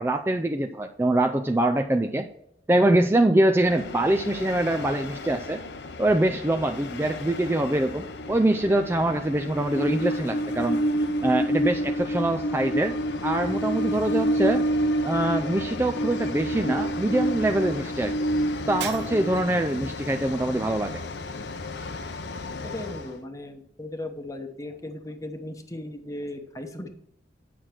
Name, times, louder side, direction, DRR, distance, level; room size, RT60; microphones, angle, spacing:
voice 1, 0.0-2.3 2.7-5.6 6.0-10.8 11.2-12.9 13.2-14.6 15.0-18.1 18.7-21.0, right 1 dB, 15° right, 5 dB, 0.4 m, -24 dB
Train, 3.7-23.1, equal, 75° left, 0.8 m, -29 dB
Shatter, 18.8-19.6, right 7 dB, 70° right, 0.9 m, -37 dB
voice 2, 22.6-26.9, left 1 dB, 20° left, 6 dB, 0.9 m, -37 dB
9.3 x 6.3 x 4.4 m, 0.76 s
head